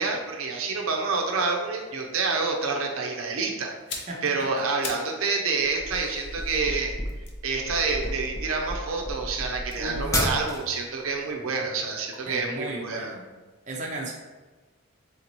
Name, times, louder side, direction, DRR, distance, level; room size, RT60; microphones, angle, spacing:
voice 1, 0.0-6.9 7.4-13.1, right 4 dB, 85° right, 1 dB, 0.6 m, -28 dB
sound 1, 3.7-5.2 5.5-8.8 9.6-11.6 11.9-12.1, left 4 dB, 55° left, 0.6 m, -43 dB
voice 2, 4.1-4.7 9.8-10.1 12.3-13.3 13.6-14.1, right 1 dB, 35° right, -1 dB, 0.5 m, -35 dB
sound 2, 5.6-10.8, left 1 dB, 15° left, 0.4 m, -32 dB
4.0 x 3.6 x 3.0 m, 1.3 s
head